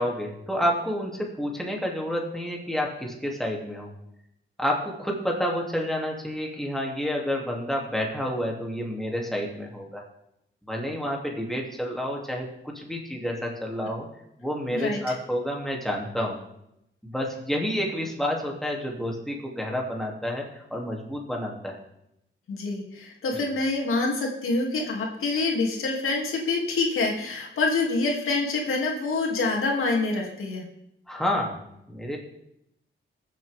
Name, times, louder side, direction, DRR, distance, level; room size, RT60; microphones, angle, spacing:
voice 1, 0.0-3.9 4.6-10.0 10.7-14.1 14.4-16.4 17.0-21.8 31.1-31.6 31.9-32.2, equal, ahead, -1 dB, 2.7 m, -29 dB
voice 2, 22.5-30.7, left 3 dB, 85° left, 0 dB, 2.6 m, -26 dB
21.5 x 7.6 x 3.6 m, 0.80 s
cardioid pair, 100°, 21 cm